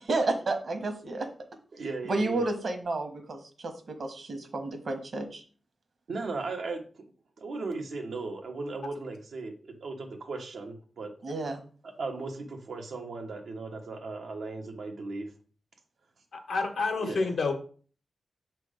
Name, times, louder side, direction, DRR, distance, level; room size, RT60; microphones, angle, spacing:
voice 1, 0.1-1.3 2.1-5.4 11.2-11.6, right 2 dB, 60° right, 6 dB, 1.2 m, -31 dB
voice 2, 1.7-2.5 6.1-7.0 7.4-11.1 12.0-15.3 17.0-17.3, right 3 dB, 90° right, 2 dB, 1.1 m, -37 dB
voice 3, 16.3-17.5, left 4 dB, 85° left, 3 dB, 1.2 m, -29 dB
6.4 x 3.4 x 5.0 m, 0.42 s
wide cardioid pair, 90°, 0 cm